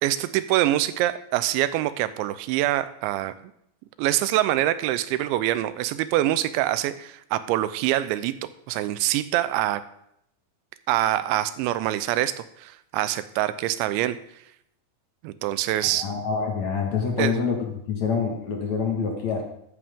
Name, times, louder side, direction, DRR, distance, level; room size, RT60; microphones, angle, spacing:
voice 1, 0.0-3.3 4.0-8.3 8.7-9.8 10.9-14.2 15.2-16.1 17.2-17.3, right 14 dB, 85° right, 14 dB, 3.0 m, -25 dB
voice 2, 15.9-17.6 17.9-19.4, left 6 dB, 55° left, 1 dB, 2.1 m, -26 dB
14.0 x 11.5 x 3.6 m, 0.73 s
omnidirectional pair, 5.2 m